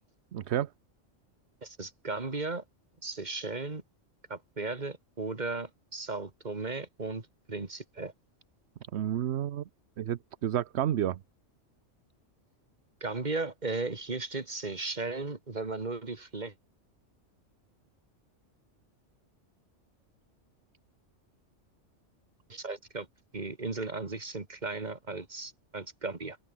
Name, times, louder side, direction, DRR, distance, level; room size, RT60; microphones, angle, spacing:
voice 1, 0.3-0.7 8.9-9.6 10.0-11.2, right 11 dB, 65° right, 1.0 m, -30 dB
voice 2, 1.6-2.6 3.0-3.8 4.3-8.1 13.0-16.5 22.5-23.1 23.3-26.4, right 3 dB, 35° right, 2.3 m, -36 dB
open air
omnidirectional pair, 1.3 m